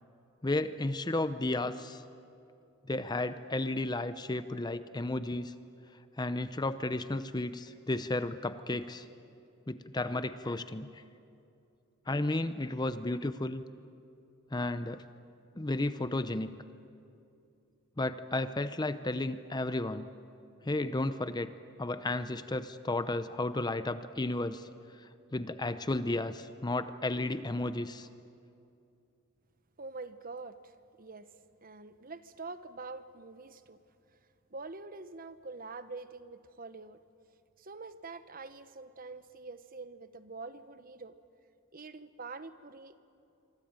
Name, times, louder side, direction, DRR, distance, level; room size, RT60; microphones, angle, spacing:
voice 1, 0.4-2.0 2.9-5.5 6.2-9.1 9.7-11.0 12.1-13.6 14.5-15.0 15.6-16.5 18.0-20.1 20.6-21.5 21.8-24.7 25.3-28.1, left 2 dB, 20° left, 12 dB, 0.7 m, -33 dB
voice 2, 29.8-30.7 31.0-31.3 31.6-33.8 34.5-37.0 37.6-41.2 41.7-43.0, right 3 dB, 40° right, 12 dB, 1.1 m, -45 dB
26.0 x 24.5 x 9.0 m, 2.6 s
head